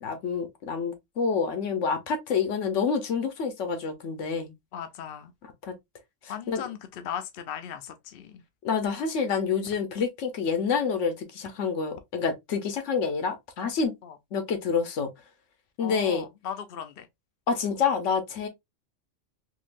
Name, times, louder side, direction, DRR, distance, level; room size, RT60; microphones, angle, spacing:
voice 1, 0.0-4.5 5.6-5.7 6.2-6.6 8.6-14.0 14.3-15.1 15.8-16.2 17.5-18.5, left 5 dB, 80° left, 1.2 m, -28 dB
voice 2, 4.7-5.3 6.3-8.4 14.0-14.2 15.8-17.1, left 8 dB, 60° left, 0.7 m, -38 dB
3.7 x 2.7 x 2.4 m
omnidirectional pair, 1.3 m